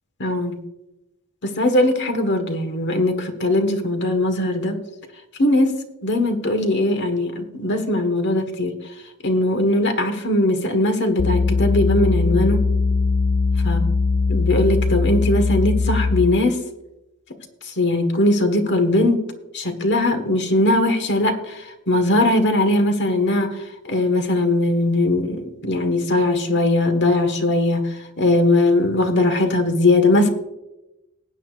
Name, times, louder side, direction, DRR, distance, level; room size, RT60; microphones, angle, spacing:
voice 1, 0.2-0.6 1.4-4.8 5.4-5.7 6.0-8.8 9.2-12.6 13.6-13.8 14.3-16.6 17.6-19.2 19.5-30.3, left 1 dB, 55° left, 7 dB, 1.5 m, -20 dB
sound 1, 11.2-16.5, left 3 dB, 30° left, 0.4 m, -20 dB
19.0 x 8.8 x 2.5 m, 0.92 s
head